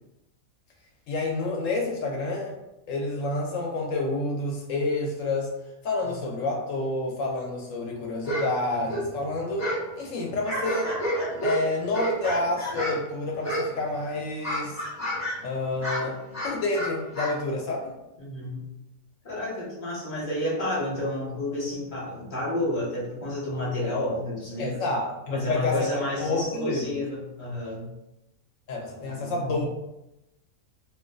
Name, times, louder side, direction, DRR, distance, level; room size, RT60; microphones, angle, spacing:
voice 1, 1.1-2.5 2.9-5.5 5.8-10.9 11.4-14.8 15.4-16.2 16.4-17.9 24.6-27.0 28.7-29.7, left 2 dB, 70° left, 1 dB, 0.9 m, -29 dB
sound 1, 8.2-8.5 8.7-9.9 10.2-13.1 13.4-13.9 14.2-15.4 15.7-17.4, right 1 dB, 15° left, 0.6 m, -30 dB
voice 2, 18.2-18.6 19.2-24.9 25.3-27.9 28.9-29.7, left 1 dB, 35° left, -6 dB, 0.9 m, -31 dB
2.5 x 2.2 x 3.7 m, 0.92 s
omnidirectional pair, 1.6 m